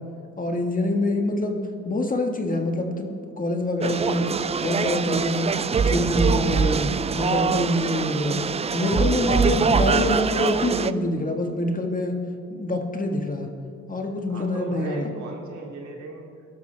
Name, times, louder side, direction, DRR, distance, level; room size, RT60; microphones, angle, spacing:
voice 1, 0.4-4.3 4.6-8.4 8.7-12.2 12.5-13.5 13.9-15.1, left 1 dB, 25° left, 3 dB, 1.6 m, -25 dB
sound 1, 3.8-10.9, right 6 dB, 20° right, 0.3 m, -23 dB
voice 2, 14.3-16.3, right 3 dB, 70° right, -1 dB, 2.7 m, -37 dB
20.5 x 12.0 x 3.4 m, 2.4 s
cardioid pair, 90°, 30 cm